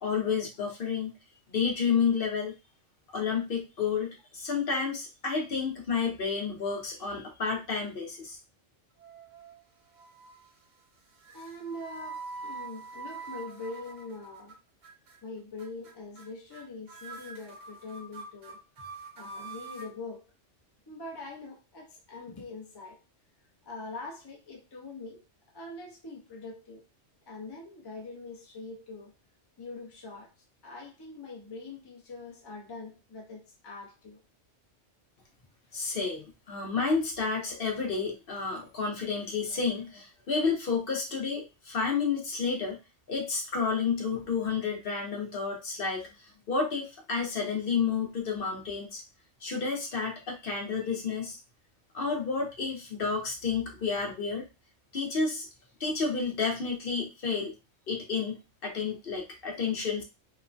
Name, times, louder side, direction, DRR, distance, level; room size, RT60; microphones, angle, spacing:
voice 1, 0.0-1.1 1.5-2.5 3.1-8.4 35.7-42.8 43.1-46.1 46.5-49.0 49.4-51.4 51.9-54.5 54.9-55.5 55.8-57.5 57.9-58.4 58.6-60.0, left 5 dB, 55° left, 0.8 m, -30 dB
sound 1, 9.0-9.6 10.0-10.5 11.2-14.5 14.8-15.2 15.6-15.9 16.2-16.3 16.5-16.6 16.9-19.9, right 4 dB, 65° right, 0.9 m, -44 dB
voice 2, 11.3-14.6 15.2-18.6 19.1-20.2 20.9-23.0 23.6-25.2 25.5-26.8 27.3-29.1 29.6-30.3 30.6-34.2, left 2 dB, 30° left, 0.5 m, -43 dB
3.0 x 2.1 x 2.5 m
omnidirectional pair, 1.3 m